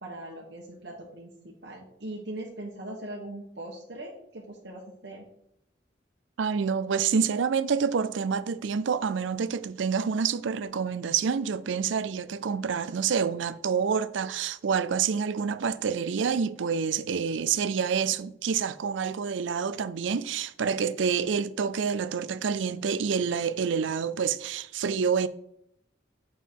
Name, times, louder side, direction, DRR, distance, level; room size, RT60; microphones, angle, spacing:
voice 1, 0.0-5.2, right 1 dB, 65° right, 1.2 m, -40 dB
voice 2, 6.4-25.3, right 6 dB, 85° right, 0.4 m, -27 dB
7.3 x 5.5 x 4.6 m
head